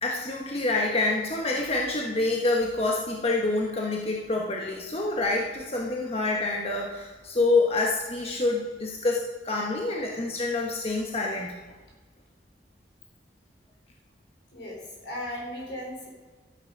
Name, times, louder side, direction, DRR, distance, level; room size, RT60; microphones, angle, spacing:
voice 1, 0.0-11.5, left 2 dB, 35° left, -1 dB, 1.2 m, -27 dB
voice 2, 14.5-16.1, left 1 dB, 75° left, -1 dB, 3.7 m, -37 dB
13.0 x 8.5 x 5.3 m, 1.3 s
head